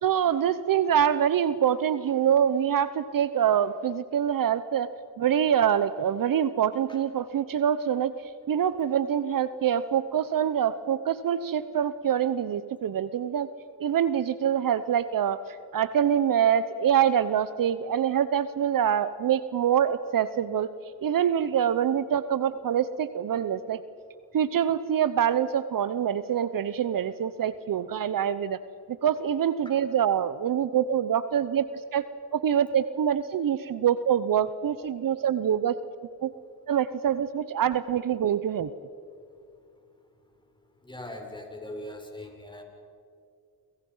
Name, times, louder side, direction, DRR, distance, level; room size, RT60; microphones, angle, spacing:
voice 1, 0.0-4.9 5.2-13.5 13.8-20.7 21.0-23.8 24.3-28.6 28.9-32.0 32.3-35.8 36.2-36.3 36.7-38.7, right 9 dB, 55° right, 14 dB, 1.0 m, -25 dB
voice 2, 40.9-42.6, left 1 dB, 10° left, 3 dB, 6.3 m, -40 dB
29.0 x 26.5 x 5.7 m, 2.4 s
supercardioid pair, 60°, 39 cm